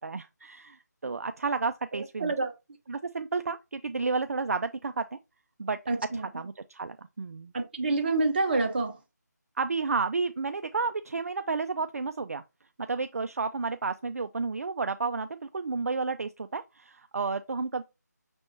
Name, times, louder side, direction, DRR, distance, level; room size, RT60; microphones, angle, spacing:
voice 1, 0.0-2.3 2.9-5.2 5.6-5.8 6.1-7.5 9.6-12.4 12.8-17.8, right 4 dB, 55° right, 0.3 m, -31 dB
voice 2, 1.9-2.5 5.9-6.3 7.5-9.0, right 3 dB, 35° right, 0.8 m, -27 dB
6.0 x 3.4 x 2.6 m
figure-of-eight pair, 165°, 10 cm